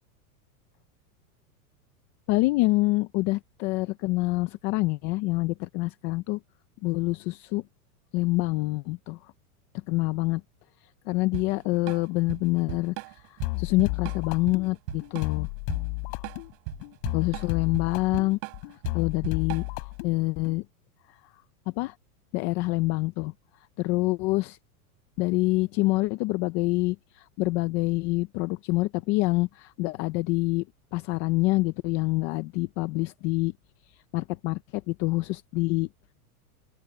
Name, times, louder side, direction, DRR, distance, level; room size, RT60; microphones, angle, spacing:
voice 1, 2.3-6.4 6.8-7.6 8.1-9.2 9.9-10.4 11.1-12.9 13.3-15.5 17.1-18.4 18.9-19.6 20.0-20.6 21.8-21.9 22.3-23.3 23.8-24.6 25.2-30.6 30.9-33.5 34.1-35.9, left 21 dB, 25° left, 0.4 m, -26 dB
Drum kit / Drum, 11.3-19.9, right 33 dB, 50° right, 7.3 m, -39 dB
sound 1, 13.4-20.6, left 40 dB or more, 45° left, 3.1 m, -33 dB
open air
supercardioid pair, 145°, 44 cm